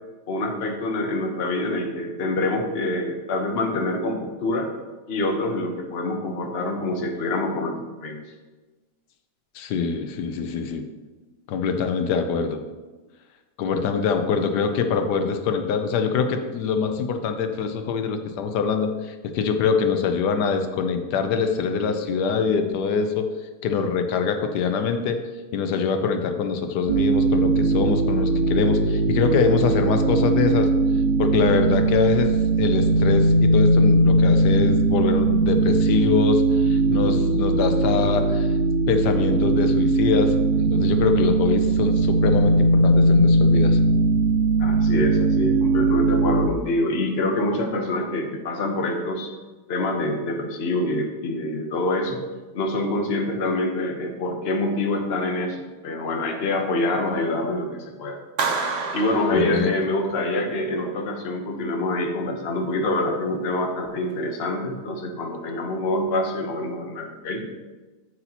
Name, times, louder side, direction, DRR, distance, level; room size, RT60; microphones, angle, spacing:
voice 1, 0.3-4.7 5.1-8.2 44.6-49.3 49.7-52.2 52.5-58.2 58.9-67.5, left 2 dB, 45° left, 3 dB, 1.1 m, -26 dB
voice 2, 9.5-10.9 11.5-12.6 13.6-23.3 23.6-25.2 25.5-30.7 31.2-38.5 38.9-43.8 59.3-59.7, left 6 dB, 85° left, 7 dB, 1.3 m, -24 dB
sound 1, 26.9-46.5, right 2 dB, 70° right, 0.9 m, -19 dB
Clapping, 58.4-60.3, right 4 dB, 50° right, 1.2 m, -29 dB
8.2 x 8.0 x 2.9 m, 1.2 s
omnidirectional pair, 1.7 m